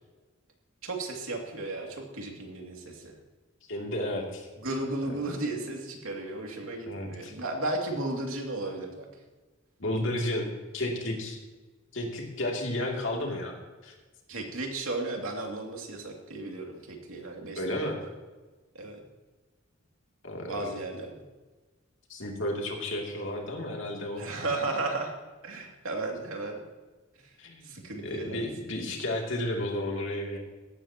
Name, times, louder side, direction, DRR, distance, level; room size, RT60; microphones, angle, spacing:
voice 1, 0.8-3.1 4.6-9.1 14.3-18.0 18.7-19.0 20.5-21.2 24.1-25.2 25.4-26.6 27.2-27.3 27.6-28.5 28.9-29.0, right 2 dB, 90° right, 1 dB, 2.6 m, -34 dB
voice 2, 3.7-4.5 6.9-7.3 9.8-11.4 11.9-13.5 13.8-13.9 17.6-18.0 20.2-20.6 22.1-24.2 27.4-27.7 28.0-30.4, left 1 dB, 65° left, 0 dB, 2.8 m, -32 dB
16.5 x 12.5 x 3.0 m, 1.2 s
head